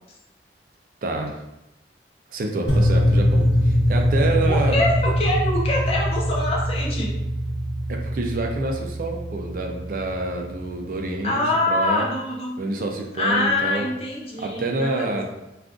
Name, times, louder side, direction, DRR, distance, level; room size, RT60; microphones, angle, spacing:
voice 1, 1.0-1.4 2.3-4.8 7.9-12.1 12.6-13.8 14.4-15.2, right 2 dB, 50° right, 2 dB, 0.4 m, -27 dB
sound 1, 2.7-10.8, equal, 85° left, 0.7 m, -23 dB
voice 2, 4.5-7.1 11.2-12.6 13.2-15.2, left 2 dB, 35° left, -2 dB, 0.6 m, -24 dB
2.4 x 2.4 x 3.6 m, 0.92 s
head